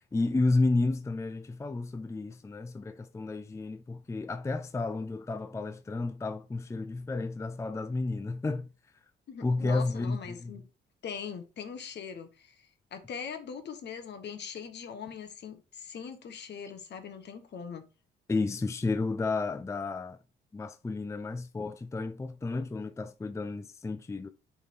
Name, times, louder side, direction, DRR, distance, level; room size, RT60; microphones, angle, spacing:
voice 1, 0.0-8.7 9.4-10.5 18.3-20.2 20.5-24.3, left 3 dB, 15° left, 0.5 m, -31 dB
voice 2, 9.3-10.6 11.0-17.8, left 6 dB, 60° left, 1.3 m, -41 dB
6.9 x 3.7 x 4.4 m
cardioid pair, 90°, 20 cm